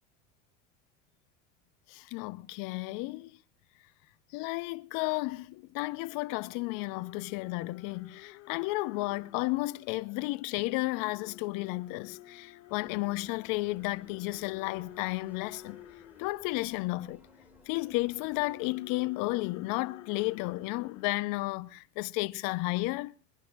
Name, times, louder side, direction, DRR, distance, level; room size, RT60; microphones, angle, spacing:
voice 1, 1.9-3.4 4.3-15.8 16.2-17.2 17.7-23.1, left 21 dB, 60° left, 0.9 m, -33 dB
sound 1, 5.9-9.9 10.5-21.7, left 14 dB, 80° left, 2.2 m, -53 dB
sound 2, 12.7-18.6, left 1 dB, 5° right, 4.1 m, -60 dB
23.5 x 11.0 x 2.5 m
hypercardioid pair, 85°, 37 cm